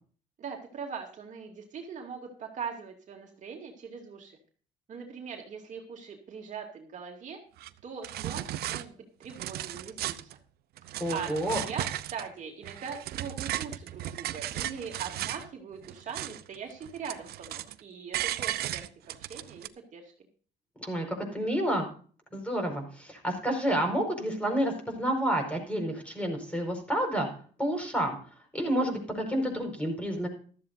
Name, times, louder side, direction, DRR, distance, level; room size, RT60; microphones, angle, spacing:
voice 1, 0.4-4.4 4.9-7.4 7.8-10.3 10.8-18.8 19.2-20.1, right 6 dB, 45° right, 2 dB, 2.5 m, -41 dB
sound 1, 7.6-7.7 8.0-8.8 9.2-10.3 10.8-12.3 12.6-15.5 15.8-16.6 16.8-17.8 18.1-19.7, right 13 dB, 70° right, 0.7 m, -35 dB
voice 2, 11.0-11.6 20.8-21.8 22.3-27.3 27.6-28.2 28.5-30.3, right 1 dB, 5° left, 3 dB, 4.9 m, -29 dB
14.5 x 13.0 x 2.6 m, 0.42 s
cardioid pair, 110°, 17 cm